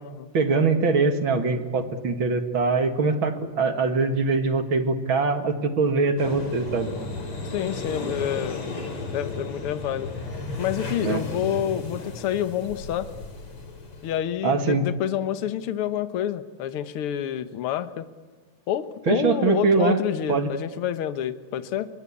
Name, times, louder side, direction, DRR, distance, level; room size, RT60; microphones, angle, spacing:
voice 1, 0.3-6.9 11.0-11.2 14.4-14.8 19.1-20.0 20.3-20.5, right 4 dB, 45° right, 8 dB, 2.1 m, -23 dB
sound 1, 6.2-14.2, left 2 dB, 40° left, 4.3 m, -34 dB
voice 2, 7.4-8.6 9.1-10.1 10.6-13.1 14.0-18.1 18.7-21.9, left 10 dB, 60° left, 12 dB, 1.4 m, -28 dB
28.0 x 24.5 x 8.6 m, 1.5 s
omnidirectional pair, 3.9 m